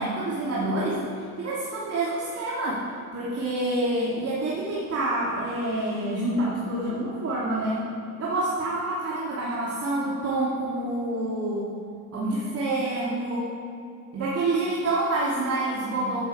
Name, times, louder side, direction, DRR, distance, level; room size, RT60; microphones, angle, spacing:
voice 1, 0.0-2.8 3.1-7.8 8.2-11.7 12.1-13.5 14.1-16.2, right 2 dB, 35° right, -7 dB, 2.9 m, -27 dB
15.0 x 7.4 x 5.0 m, 2.5 s
figure-of-eight pair, 65°, 42 cm